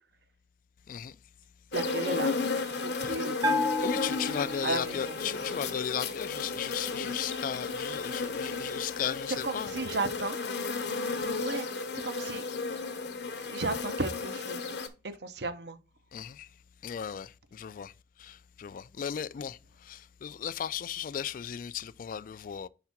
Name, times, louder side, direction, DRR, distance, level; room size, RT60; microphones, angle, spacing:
sound 1, 1.7-14.9, left 4 dB, 70° left, 0.9 m, -34 dB
voice 1, 1.7-2.4 2.6-3.8 4.6-5.2 9.4-10.4 11.4-12.8 13.4-14.7 15.0-15.8, right 3 dB, 70° right, 0.8 m, -35 dB
Bell, 3.4-5.0, left 2 dB, 20° right, 0.7 m, -31 dB
voice 2, 3.8-9.7 16.1-16.5 16.8-17.9 18.2-22.7, left 8 dB, 50° left, 0.3 m, -36 dB
5.8 x 3.6 x 5.8 m
head